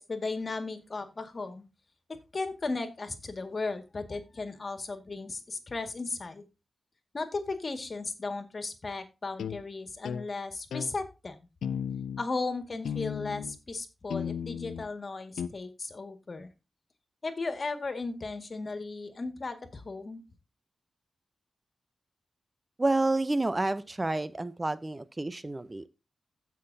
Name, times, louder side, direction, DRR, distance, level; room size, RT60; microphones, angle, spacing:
voice 1, 0.0-1.7 2.1-6.5 7.1-11.4 12.2-16.5 17.2-20.2, left 3 dB, 50° left, 8 dB, 1.9 m, -36 dB
sound 1, 9.4-9.6 10.0-10.3 10.7-10.9 11.6-12.3 12.8-13.6 14.1-14.9 15.4-15.5, left 8 dB, 85° left, 0.4 m, -34 dB
voice 2, 22.8-25.9, right 2 dB, 30° right, 15 dB, 0.7 m, -29 dB
16.0 x 5.9 x 2.7 m, 0.28 s
supercardioid pair, 40°, 0 cm